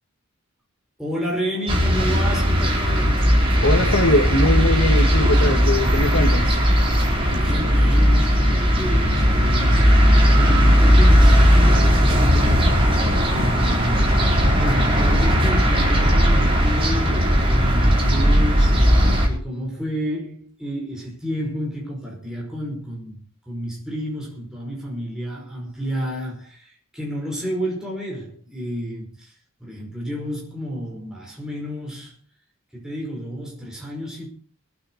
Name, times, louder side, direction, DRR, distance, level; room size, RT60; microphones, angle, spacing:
voice 1, 1.0-3.3 7.2-10.0 10.3-12.8 13.2-14.3 14.5-18.8 19.2-29.3 29.6-32.2 32.7-34.3, equal, 5° right, 5.1 m, -30 dB
sound 1, 1.7-19.3, equal, 25° right, 4.2 m, -17 dB
voice 2, 3.6-6.6, left 1 dB, 65° left, 2.0 m, -21 dB
23.5 x 9.1 x 4.6 m
head